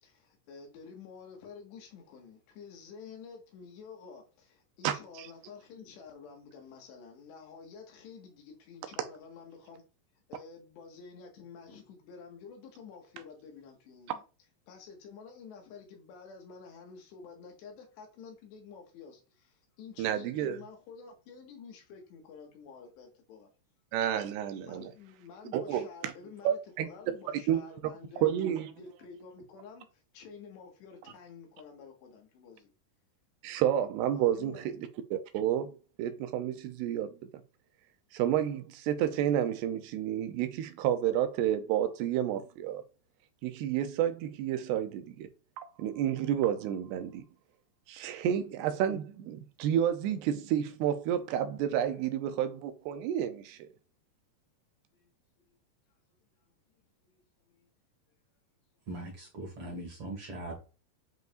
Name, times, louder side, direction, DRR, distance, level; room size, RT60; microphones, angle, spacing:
voice 1, 0.0-9.8 10.3-14.2 14.7-23.5 24.6-28.3 28.6-32.7 34.1-34.7 54.9-55.1 55.5-55.6 57.0-57.7, left 5 dB, 90° left, 3.8 m, -50 dB
voice 2, 4.8-5.3 20.0-20.6 23.9-24.9 25.5-26.1 26.4-26.9 27.3-27.6 28.2-28.7 33.4-34.6 35.1-37.1 38.1-42.8 43.4-45.3 45.6-47.3 47.9-53.7, right 10 dB, 80° right, 2.7 m, -30 dB
voice 3, 58.9-60.5, right 2 dB, 40° right, 2.4 m, -40 dB
9.2 x 5.2 x 2.6 m
omnidirectional pair, 4.9 m